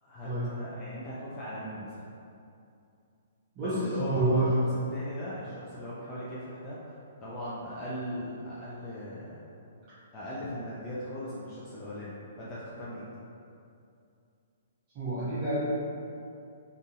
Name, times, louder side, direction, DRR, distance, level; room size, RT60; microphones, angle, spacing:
voice 1, 0.0-2.0 3.6-4.5 4.9-9.5 10.1-13.0, equal, 25° left, -9 dB, 0.6 m, -39 dB
voice 2, 3.6-4.7 14.9-15.6, right 1 dB, 35° right, -12 dB, 0.8 m, -27 dB
3.8 x 2.7 x 2.3 m, 2.6 s
figure-of-eight pair, 125°, 0 cm